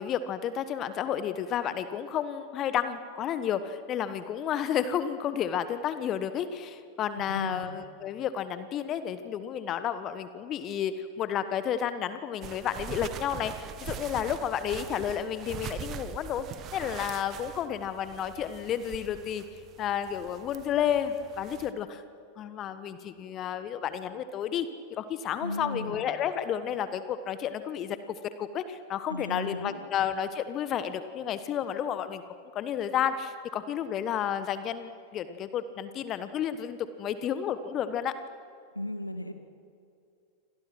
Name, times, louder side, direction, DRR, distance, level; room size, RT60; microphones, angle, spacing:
voice 1, 0.0-22.0 22.4-32.2 32.5-38.2, left 9 dB, 30° left, 12 dB, 1.2 m, -31 dB
voice 2, 7.2-7.8 25.4-26.0 29.1-29.8 38.7-39.3, left 1 dB, 85° left, 7 dB, 2.1 m, -36 dB
sound 1, 12.4-21.7, right 9 dB, 35° right, 1.5 m, -43 dB
29.0 x 26.5 x 6.2 m, 2.5 s
figure-of-eight pair, 90°, 0 cm